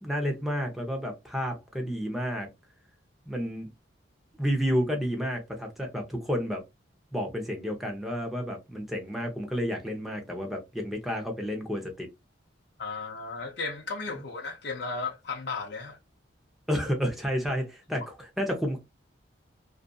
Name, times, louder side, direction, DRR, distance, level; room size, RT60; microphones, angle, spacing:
voice 1, 0.0-2.5 3.3-3.7 4.4-6.6 7.1-12.1 16.7-18.8, equal, ahead, 0.6 m, -30 dB
voice 2, 12.8-16.0, left 4 dB, 55° left, 0.5 m, -35 dB
2.6 x 2.4 x 2.2 m
head